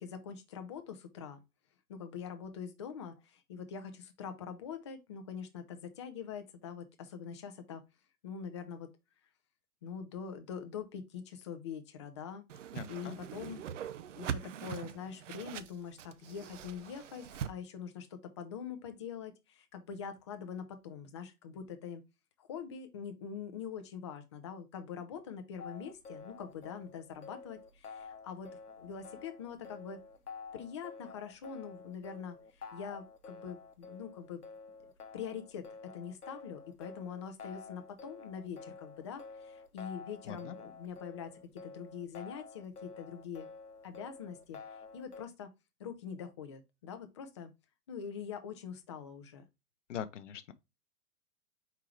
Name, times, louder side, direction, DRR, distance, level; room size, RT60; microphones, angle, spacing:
voice 1, 0.0-1.4 1.9-7.8 8.2-8.9 9.8-12.4 12.9-13.6 14.2-22.0 22.4-28.5 28.8-30.0 30.5-34.4 35.1-43.5 43.8-44.6 44.9-45.5 45.8-47.5 47.9-49.4, left 7 dB, 20° left, 0.4 m, -44 dB
Whoosh swoosh swish, 12.5-17.5, right 9 dB, 55° right, 0.5 m, -42 dB
voice 2, 12.7-13.2 40.3-40.6 49.9-50.5, left 9 dB, 55° left, 0.7 m, -42 dB
sound 1, 25.6-45.2, left 4 dB, 85° left, 0.8 m, -50 dB
4.6 x 3.8 x 3.0 m
figure-of-eight pair, 110°, 44 cm